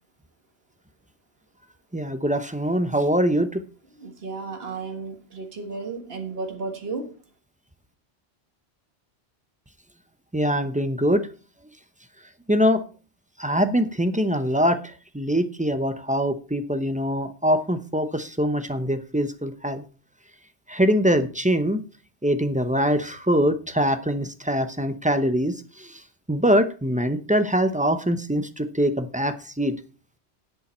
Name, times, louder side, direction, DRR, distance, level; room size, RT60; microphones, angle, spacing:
voice 1, 1.9-3.6 10.3-11.3 12.5-12.8 13.4-14.8 15.1-19.8 20.7-21.8 22.2-26.0 26.3-29.7, equal, 10° right, 9 dB, 0.6 m, -23 dB
voice 2, 4.0-7.1, right 4 dB, 55° right, 4 dB, 1.8 m, -33 dB
10.5 x 8.6 x 4.3 m, 0.37 s
omnidirectional pair, 1.2 m